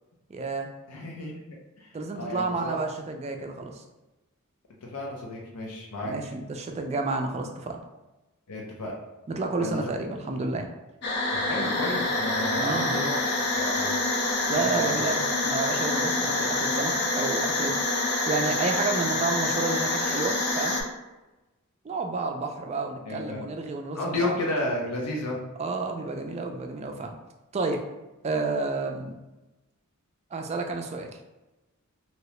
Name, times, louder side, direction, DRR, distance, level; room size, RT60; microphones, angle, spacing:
voice 1, 0.3-0.7 1.9-3.8 6.0-7.8 9.3-10.7 12.6-13.1 14.5-17.7 18.1-20.8 21.8-24.4 25.6-27.1 27.5-27.8 28.2-29.1 30.3-31.1, right 3 dB, 30° right, 4 dB, 0.3 m, -30 dB
voice 2, 0.9-1.4 1.8-2.8 4.8-6.1 8.5-8.9 9.6-9.8 11.3-13.9 14.5-15.0 23.1-23.5 23.9-25.4, left 1 dB, 90° left, -2 dB, 0.6 m, -32 dB
sound 1, 11.0-20.8, left 2 dB, 50° left, 0.6 m, -26 dB
2.9 x 2.8 x 3.1 m, 1.0 s
head